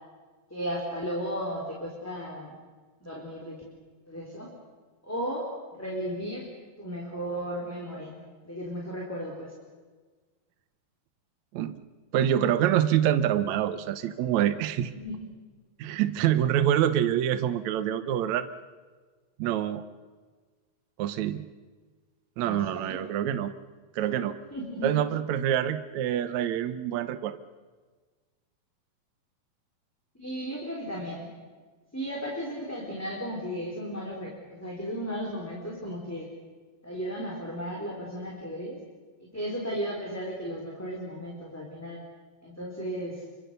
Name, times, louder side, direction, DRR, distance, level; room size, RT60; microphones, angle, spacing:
voice 1, 0.5-2.5 3.0-3.6 4.1-4.5 5.0-6.5 6.8-9.5 14.9-15.2 22.4-23.0 24.5-24.9 30.2-31.3 31.9-34.3 34.6-36.3 36.8-38.8 39.2-42.0 42.4-43.2, equal, 5° left, -2 dB, 3.5 m, -35 dB
voice 2, 12.1-14.9 15.8-18.5 19.4-19.8 21.0-21.4 22.4-23.5 24.0-24.4 24.8-27.4, right 10 dB, 70° right, 10 dB, 1.8 m, -26 dB
28.5 x 24.5 x 6.8 m, 1.4 s
omnidirectional pair, 4.3 m